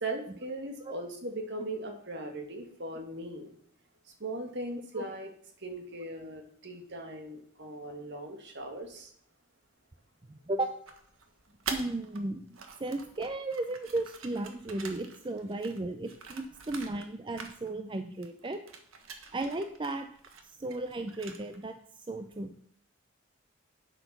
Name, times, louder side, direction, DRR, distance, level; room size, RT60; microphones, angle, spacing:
voice 1, 0.0-3.5 4.2-5.3 5.6-9.1, right 2 dB, 55° right, 4 dB, 1.8 m, -39 dB
voice 2, 10.3-10.7 11.7-18.6 19.3-20.1 20.4-22.5, right 2 dB, 25° right, 7 dB, 0.5 m, -35 dB
sound 1, 10.9-12.2 12.5-17.1 17.4-18.0 18.2-21.7, right 5 dB, 70° right, 1.4 m, -45 dB
9.1 x 7.9 x 6.0 m, 0.64 s
head